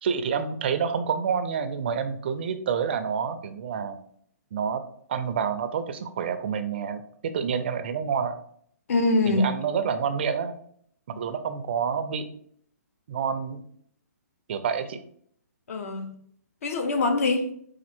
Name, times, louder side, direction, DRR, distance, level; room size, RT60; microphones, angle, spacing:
voice 1, 0.0-4.0 4.5-4.8 5.1-8.4 9.3-10.5 11.1-12.3 13.1-13.6 14.5-15.0, right 6 dB, 40° right, 9 dB, 0.4 m, -28 dB
voice 2, 8.9-9.5 15.7-16.2 16.6-17.5, left 2 dB, 55° left, 6 dB, 0.7 m, -24 dB
4.2 x 2.4 x 4.3 m, 0.64 s
hypercardioid pair, 165°, 9 cm